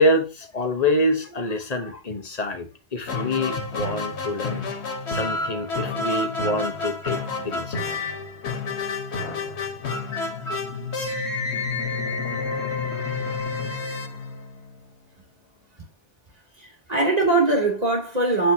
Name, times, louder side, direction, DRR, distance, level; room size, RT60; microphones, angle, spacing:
voice 1, 0.0-4.7 5.1-7.8, left 1 dB, 40° left, 1.2 m, -26 dB
sound 1, 3.1-14.9, left 3 dB, 90° left, 1.5 m, -29 dB
voice 2, 16.6-18.5, right 2 dB, 35° right, 3.0 m, -21 dB
8.3 x 7.9 x 2.8 m
omnidirectional pair, 1.1 m